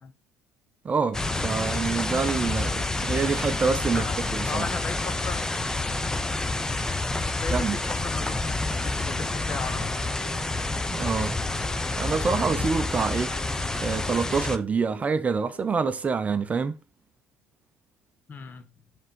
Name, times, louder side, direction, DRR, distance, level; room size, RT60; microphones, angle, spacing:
voice 1, 0.8-4.1 4.3-4.6 7.5-7.8 10.9-11.3 12.0-13.3 13.8-16.7, right 5 dB, 30° right, 0.5 m, -26 dB
sound 1, 1.1-14.6, left 2 dB, 10° left, 0.6 m, -28 dB
voice 2, 4.5-5.5 7.3-10.0 18.3-18.7, left 5 dB, 40° left, 1.1 m, -36 dB
digital flame, 9.1-16.1, left 6 dB, 60° left, 1.9 m, -50 dB
5.5 x 3.6 x 5.2 m
supercardioid pair, 85°, 5 cm